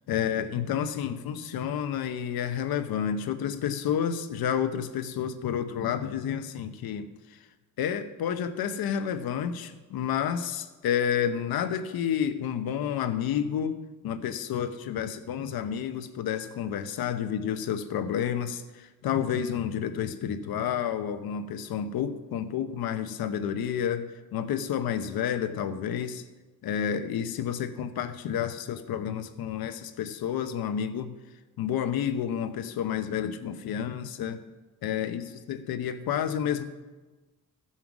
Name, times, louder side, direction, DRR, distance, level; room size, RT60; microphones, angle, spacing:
voice 1, 0.1-7.1 7.8-26.2 26.6-31.2 31.6-34.4 34.8-36.6, left 8 dB, 85° left, 10 dB, 0.9 m, -30 dB
14.5 x 5.7 x 6.0 m, 1.2 s
cardioid pair, 145°, 36 cm